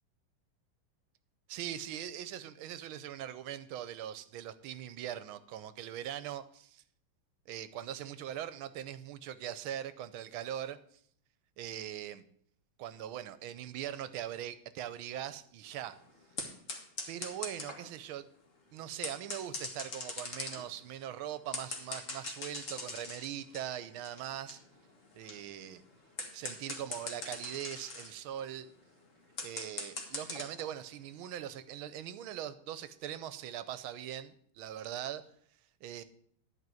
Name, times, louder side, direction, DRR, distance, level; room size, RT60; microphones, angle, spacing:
voice 1, 1.5-6.8 7.5-10.8 11.6-12.2 12.8-16.0 17.1-18.3 18.7-24.6 25.1-25.8 26.3-28.7 29.4-35.2 35.8-36.0, right 11 dB, 80° right, 14 dB, 1.5 m, -41 dB
sound 1, 15.6-17.9 18.8-30.7 31.1-31.6, left 3 dB, 40° left, 1.7 m, -43 dB
11.0 x 4.7 x 7.6 m, 0.62 s
omnidirectional pair, 2.3 m